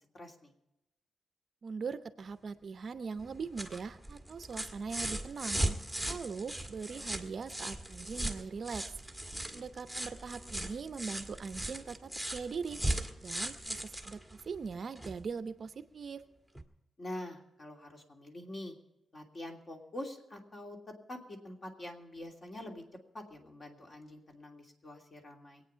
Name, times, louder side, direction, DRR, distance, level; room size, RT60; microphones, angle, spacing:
voice 1, 0.1-0.5 9.3-9.7 17.0-18.7 19.1-22.8 23.1-25.6, left 1 dB, 35° left, 2 dB, 2.9 m, -45 dB
voice 2, 1.6-5.6 6.0-8.8 9.5-12.8 13.2-16.2, right 5 dB, 50° right, 12 dB, 0.7 m, -41 dB
sound 1, 3.2-15.2 16.5-16.6, right 1 dB, 5° left, 1.5 m, -38 dB
23.0 x 9.0 x 5.6 m, 0.86 s
wide cardioid pair, 125°, 0 cm